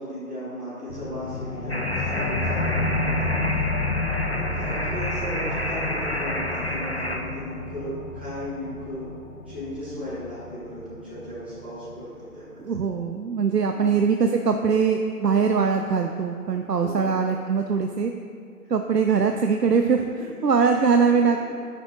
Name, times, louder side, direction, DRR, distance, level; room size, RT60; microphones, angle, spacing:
voice 1, 0.0-3.7 4.3-9.1 9.4-12.6 13.7-13.8 16.8-17.1 19.1-19.2 19.9-20.0 20.4-20.5 21.4-21.5, equal, 5° right, -17 dB, 1.5 m, -36 dB
sound 1, 0.9-12.0, left 3 dB, 75° left, 1.1 m, -31 dB
sound 2, 1.7-7.2, equal, 40° left, 0.5 m, -30 dB
voice 2, 12.6-18.1 18.7-21.5, right 5 dB, 85° right, 5 dB, 0.7 m, -22 dB
9.2 x 8.9 x 2.5 m, 2.2 s
figure-of-eight pair, 165°, 47 cm